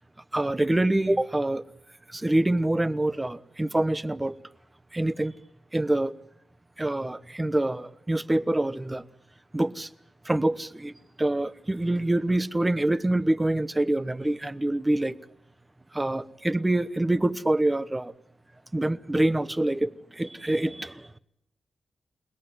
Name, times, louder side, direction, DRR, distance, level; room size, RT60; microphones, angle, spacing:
voice 1, 0.3-1.6 2.1-4.4 4.9-5.3 5.7-6.1 6.8-9.0 9.5-9.9 10.2-10.9 11.2-15.2 15.9-18.1 18.7-21.2, right 1 dB, 15° right, 1.1 m, -26 dB
28.5 x 21.0 x 9.8 m
wide cardioid pair, 150°, 0 cm